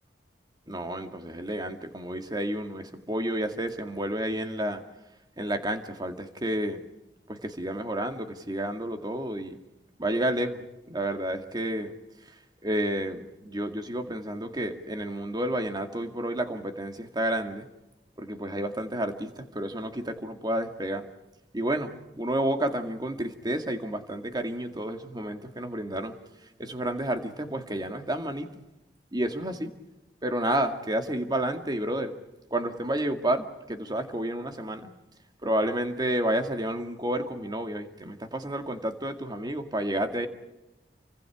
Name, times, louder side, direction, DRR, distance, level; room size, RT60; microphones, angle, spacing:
voice 1, 0.7-4.8 5.4-6.8 7.3-9.6 10.0-10.6 10.9-11.9 12.6-17.7 18.2-21.0 21.5-26.2 26.6-28.5 29.1-29.7 30.2-32.1 32.5-34.9 35.4-40.3, right 1 dB, 25° right, 6 dB, 2.1 m, -30 dB
29.5 x 25.0 x 4.9 m, 0.97 s
head